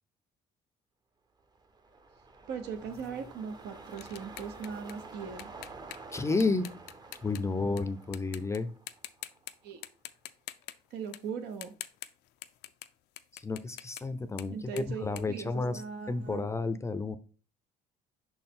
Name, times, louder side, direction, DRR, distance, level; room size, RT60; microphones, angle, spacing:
sound 1, 1.4-9.9 10.2-10.3, right 3 dB, 25° right, 0.7 m, -49 dB
voice 1, 2.5-5.5 9.6-9.8 10.9-11.7 14.5-16.5, right 6 dB, 80° right, 1.0 m, -39 dB
sound 2, 2.9-7.8 8.1-8.6 8.9-9.5 9.8-16.2, left 14 dB, 80° left, 0.4 m, -46 dB
voice 2, 6.1-6.7 7.2-8.7 13.3-15.8 16.1-17.2, left 3 dB, 15° left, 0.5 m, -31 dB
5.8 x 4.4 x 3.7 m
cardioid pair, 110°, 17 cm